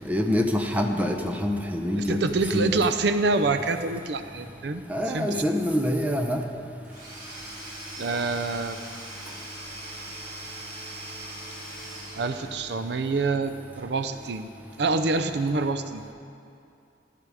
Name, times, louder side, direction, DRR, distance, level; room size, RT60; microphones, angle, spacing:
voice 1, 0.0-2.2 2.5-2.8 4.9-6.4, left 1 dB, 10° right, 3 dB, 0.8 m, -25 dB
voice 2, 2.1-5.4 8.0-8.9 12.1-14.5 14.8-16.0, right 3 dB, 65° right, 9 dB, 0.5 m, -26 dB
Domestic sounds home sounds / Tools, 6.8-13.0, right 1 dB, 45° right, 3.2 m, -41 dB
15.0 x 12.5 x 4.9 m, 2.5 s
head